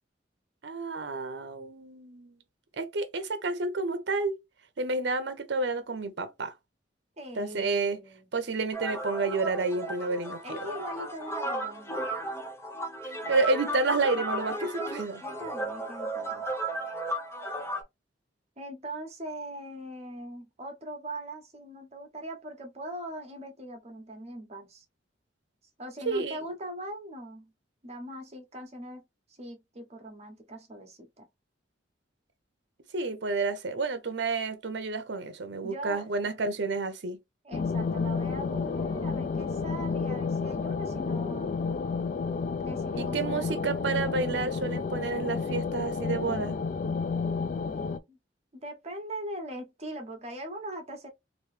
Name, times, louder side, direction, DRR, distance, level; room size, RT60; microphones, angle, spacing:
voice 1, 0.6-2.4 2.7-4.3 4.8-6.5 7.3-8.0 8.3-10.6 13.3-15.2 26.1-26.4 32.9-37.2 43.0-46.6, right 3 dB, 70° right, 0.7 m, -30 dB
voice 2, 7.2-8.3 10.4-12.0 15.2-16.4 18.6-24.8 25.8-27.5 27.8-29.0 29.3-31.3 35.6-36.2 37.4-41.6 42.6-43.7 48.1-48.2 48.5-51.1, right 1 dB, 35° right, 1.0 m, -41 dB
sound 1, 8.7-17.8, right 1 dB, 15° left, 0.7 m, -34 dB
sound 2, 37.5-48.0, left 5 dB, 45° left, 0.3 m, -31 dB
3.0 x 2.7 x 3.2 m
head